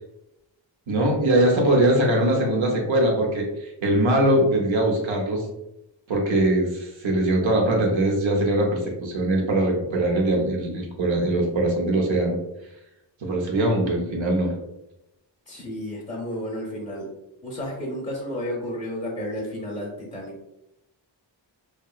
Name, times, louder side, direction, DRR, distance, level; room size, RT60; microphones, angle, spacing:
voice 1, 0.9-5.4 6.1-12.4 13.2-14.5, right 1 dB, 80° right, 0 dB, 0.8 m, -22 dB
voice 2, 15.5-17.1 17.4-20.4, equal, 15° left, -4 dB, 0.6 m, -32 dB
2.8 x 2.2 x 2.3 m, 0.88 s
wide cardioid pair, 130°, 46 cm